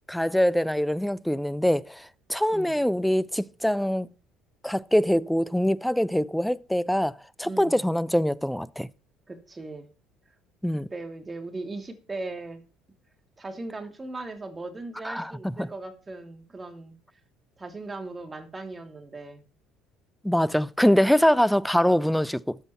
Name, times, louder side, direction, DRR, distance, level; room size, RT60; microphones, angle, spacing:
voice 1, 0.1-4.1 4.6-8.9 10.6-10.9 15.0-15.3 15.6-15.7 20.2-22.6, equal, 5° left, 0.5 m, -24 dB
voice 2, 2.5-2.8 7.4-7.9 9.3-9.9 10.9-12.6 13.4-17.0 17.6-19.4, right 2 dB, 20° right, 2.6 m, -38 dB
13.0 x 7.8 x 4.3 m
hypercardioid pair, 65°, 0 cm